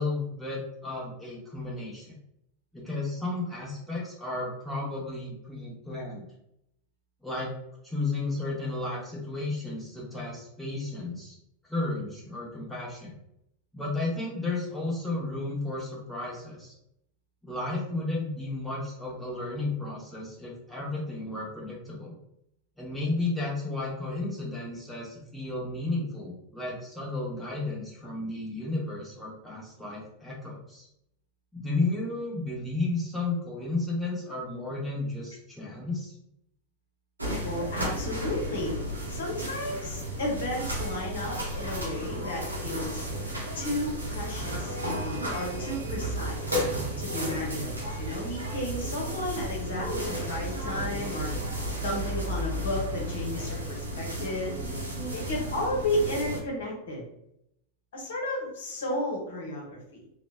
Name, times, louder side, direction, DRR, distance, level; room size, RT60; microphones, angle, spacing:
voice 1, 0.0-2.1 2.7-6.3 7.2-7.5 7.8-11.3 11.7-13.1 13.7-16.7 17.4-22.2 22.8-30.9 31.5-36.1, left 2 dB, ahead, -6 dB, 0.8 m, -33 dB
sound 1, 37.2-56.4, equal, 80° right, 0.7 m, -33 dB
voice 2, 37.4-38.8 39.1-43.1 43.5-46.6 47.0-51.3 51.8-54.6 55.1-57.0 57.9-60.0, left 1 dB, 60° left, -2 dB, 0.9 m, -33 dB
2.9 x 2.1 x 2.2 m, 0.78 s
figure-of-eight pair, 90°, 0 cm